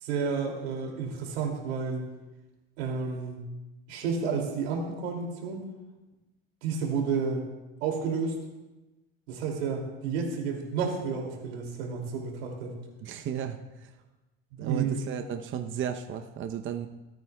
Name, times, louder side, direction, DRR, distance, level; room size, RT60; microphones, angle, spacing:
voice 1, 0.0-2.1 2.8-3.4 3.9-5.7 6.6-7.5 7.8-8.3 9.3-12.8 14.5-15.0, right 5 dB, 90° right, 1 dB, 2.7 m, -31 dB
voice 2, 13.0-13.9 14.6-16.9, right 8 dB, 40° right, 6 dB, 0.8 m, -34 dB
26.0 x 9.3 x 2.3 m, 1.1 s
supercardioid pair, 100°, 30 cm